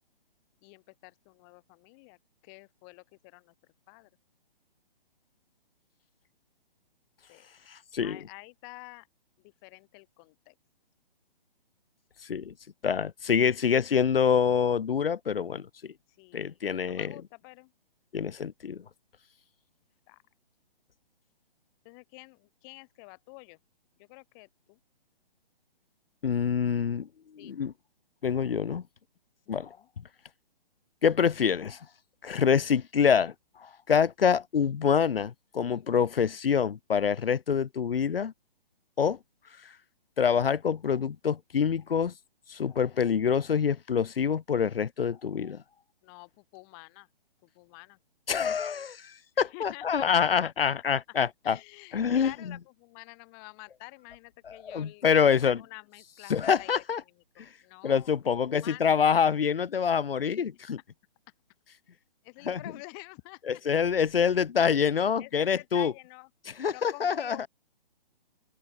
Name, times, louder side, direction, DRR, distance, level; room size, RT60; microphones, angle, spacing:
voice 1, 0.6-2.2 2.4-3.5 3.9-4.1 7.3-7.5 8.0-9.1 9.4-10.5 16.1-16.6 16.8-17.7 20.1-20.2 21.8-23.6 24.0-24.8 27.4-27.7 29.5-29.9 35.6-35.9 46.0-47.1 47.4-48.0 49.3-50.7 51.4-55.0 55.4-59.0 60.3-60.4 62.2-63.6 65.0-67.5, left 35 dB, 25° left, 1.5 m, -49 dB
voice 2, 7.7-8.2 12.3-12.5 12.8-15.7 16.3-17.1 18.1-18.8 26.2-27.1 27.4-27.7 28.2-28.8 29.5-29.7 31.0-31.8 32.2-33.3 33.6-38.3 39.0-39.2 40.2-42.1 42.5-45.6 48.3-51.6 51.9-52.6 54.5-55.6 56.3-57.0 57.4-57.5 57.8-60.8 62.5-62.6 63.5-65.9 66.6-67.5, left 7 dB, 75° left, 0.8 m, -26 dB
open air
figure-of-eight pair, 135°, 29 cm